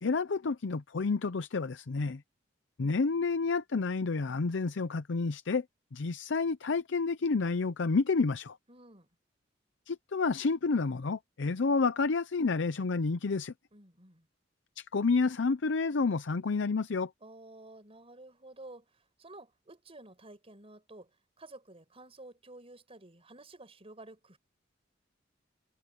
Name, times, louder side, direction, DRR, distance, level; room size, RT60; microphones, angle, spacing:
voice 1, 0.0-2.2 2.8-5.6 5.9-8.6 9.9-13.5 14.8-17.1, left 4 dB, 70° left, 0.6 m, -29 dB
voice 2, 8.7-9.1 13.7-14.3 17.2-21.1 21.4-24.4, right 2 dB, 30° right, 5.2 m, -52 dB
head